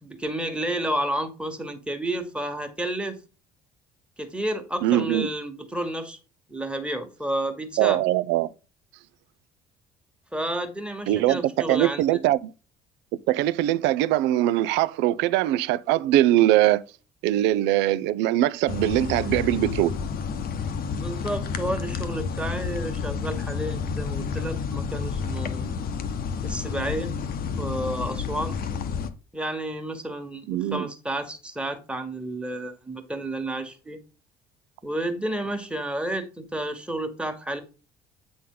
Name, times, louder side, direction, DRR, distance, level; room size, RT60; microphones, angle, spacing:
voice 1, 0.0-3.2 4.2-6.2 6.5-8.0 10.3-12.2 20.9-25.7 26.4-27.1 27.6-28.6 29.3-34.0 34.8-37.6, right 1 dB, 5° right, 1.5 m, -31 dB
voice 2, 4.8-5.3 7.8-8.5 11.1-11.4 11.7-12.4 13.3-16.8 17.2-20.0 30.5-30.9, right 14 dB, 60° right, 0.5 m, -22 dB
sound 1, 18.7-29.1, left 6 dB, 50° left, 0.9 m, -30 dB
8.6 x 4.1 x 3.8 m
figure-of-eight pair, 55°, 20 cm